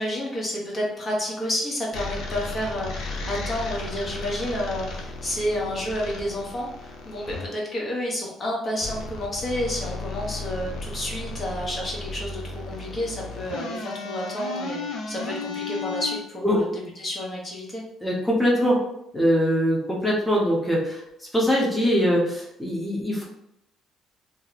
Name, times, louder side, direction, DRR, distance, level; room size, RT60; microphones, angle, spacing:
voice 1, 0.0-17.8, left 1 dB, 35° left, -3 dB, 0.9 m, -30 dB
sound 1, 1.9-7.5 8.8-16.2, left 3 dB, 70° left, 0.7 m, -34 dB
voice 2, 18.0-18.8 19.1-21.0 21.3-23.2, equal, 5° left, -4 dB, 0.9 m, -22 dB
2.8 x 2.0 x 4.0 m, 0.79 s
cardioid pair, 95°, 0 cm